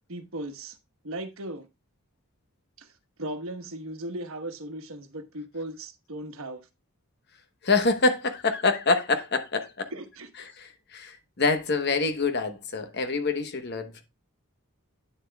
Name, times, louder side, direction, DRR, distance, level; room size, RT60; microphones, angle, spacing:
voice 1, 0.1-0.8 1.0-1.7 2.8-2.9 3.2-6.6 9.9-10.3, right 1 dB, 70° right, 1.1 m, -37 dB
voice 2, 7.6-9.9 10.6-14.0, left 3 dB, 50° left, 1.0 m, -26 dB
9.1 x 7.4 x 2.2 m
head